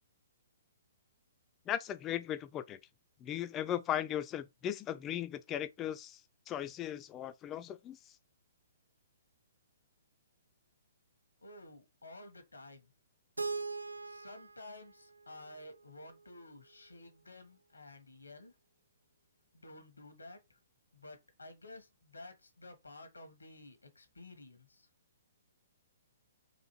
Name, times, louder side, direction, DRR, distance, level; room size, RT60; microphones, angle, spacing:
voice 1, 1.7-2.8 3.2-6.2 6.5-8.0, left 11 dB, 20° left, 0.4 m, -37 dB
voice 2, 11.4-12.9 14.0-18.5 19.5-20.4 20.9-24.9, left 2 dB, 80° left, 1.1 m, -52 dB
Keyboard (musical), 13.4-16.3, right 4 dB, 85° right, 0.3 m, -42 dB
4.2 x 2.5 x 3.0 m
figure-of-eight pair, 125°, 0 cm